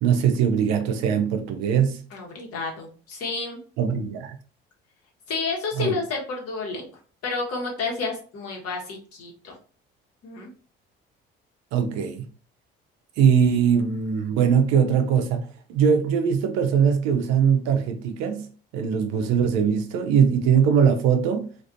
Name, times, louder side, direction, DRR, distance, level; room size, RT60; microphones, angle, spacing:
voice 1, 0.0-2.0 3.8-4.4 5.8-5.9 11.7-12.3 13.2-18.5 18.7-21.5, right 7 dB, 65° right, 0.6 m, -21 dB
voice 2, 2.1-3.6 5.3-6.9 7.2-9.5 10.2-10.5, left 4 dB, 55° left, 1.2 m, -30 dB
2.6 x 2.5 x 2.5 m
hypercardioid pair, 55°, 29 cm